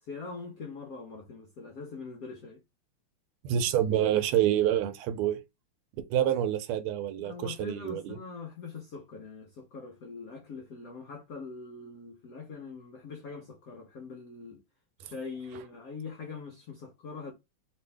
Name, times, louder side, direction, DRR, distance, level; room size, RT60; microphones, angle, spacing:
voice 1, 0.0-2.6 7.2-14.6 15.0-17.3, left 4 dB, 85° left, 0.7 m, -43 dB
voice 2, 3.4-5.4 6.1-8.2, right 11 dB, 85° right, 1.5 m, -27 dB
3.3 x 2.5 x 3.3 m
omnidirectional pair, 2.4 m